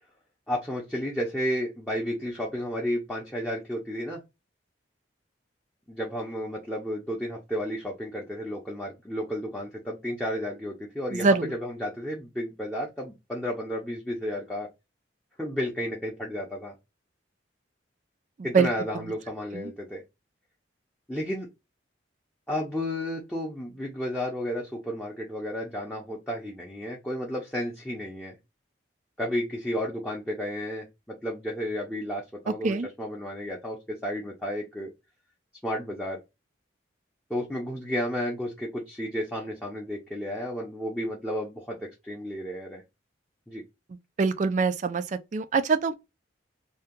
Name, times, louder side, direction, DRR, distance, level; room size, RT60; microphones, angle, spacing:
voice 1, 0.5-4.2 5.9-14.7 15.4-16.7 18.4-20.0 21.1-21.5 22.5-28.4 29.2-30.9 31.2-34.9 35.6-36.2 37.3-41.8 42.0-42.8 43.5-43.6, equal, 5° left, 0.6 m, -32 dB
voice 2, 11.1-11.5 18.5-18.7 18.9-19.1 19.5-19.7 32.6-32.9 44.2-45.0 45.3-45.9, right 4 dB, 40° right, 0.3 m, -24 dB
2.7 x 2.2 x 3.5 m
head